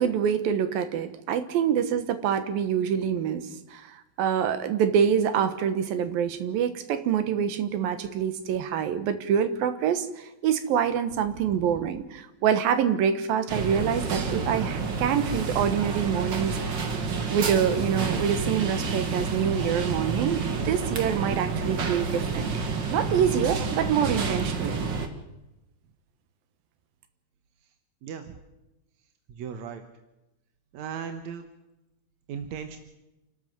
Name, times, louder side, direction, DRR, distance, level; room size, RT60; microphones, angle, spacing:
voice 1, 0.0-16.9 17.3-22.5 22.9-24.8, right 8 dB, 80° right, 10 dB, 3.0 m, -26 dB
sound 1, 13.5-25.1, right 4 dB, 45° right, 1.7 m, -29 dB
voice 2, 28.0-28.4 29.3-29.8 30.7-31.4 32.3-32.8, right 7 dB, 65° right, 7 dB, 2.0 m, -37 dB
28.0 x 12.5 x 7.8 m, 0.98 s
omnidirectional pair, 4.1 m